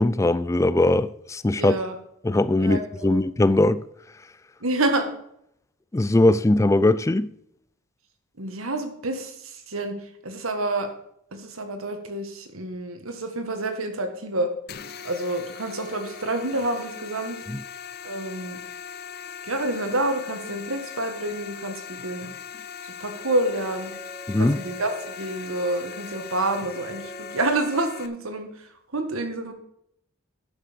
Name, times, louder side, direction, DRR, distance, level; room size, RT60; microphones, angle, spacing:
voice 1, 0.0-1.8 2.2-3.8 5.9-7.3 17.5-17.6 24.3-24.6, left 2 dB, 15° left, 0.3 m, -20 dB
voice 2, 1.6-2.0 2.6-3.2 4.6-5.1 8.4-10.0 10.2-10.9 11.3-14.5 15.0-17.4 18.0-18.6 19.4-22.3 22.8-23.9 24.4-29.5, right 2 dB, 90° right, 1.8 m, -28 dB
sound 1, 14.7-28.1, left 7 dB, 50° left, 0.6 m, -40 dB
sound 2, 23.2-28.1, right 1 dB, 20° right, 0.9 m, -45 dB
11.5 x 6.7 x 5.3 m
head